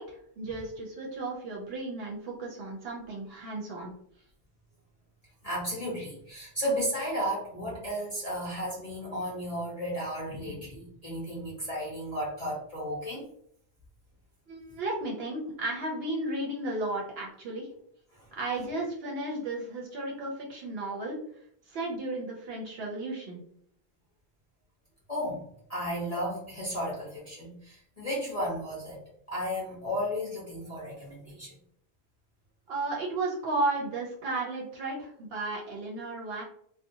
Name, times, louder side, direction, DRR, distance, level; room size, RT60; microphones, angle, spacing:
voice 1, 0.0-3.9 14.5-17.7 18.3-21.2 21.7-23.4 32.7-36.4, right 2 dB, 70° right, -2 dB, 0.8 m, -34 dB
voice 2, 5.4-13.3 18.1-18.3 25.1-29.0 29.3-31.5, equal, 40° left, -6 dB, 0.7 m, -34 dB
2.7 x 2.2 x 2.6 m, 0.68 s
omnidirectional pair, 1.1 m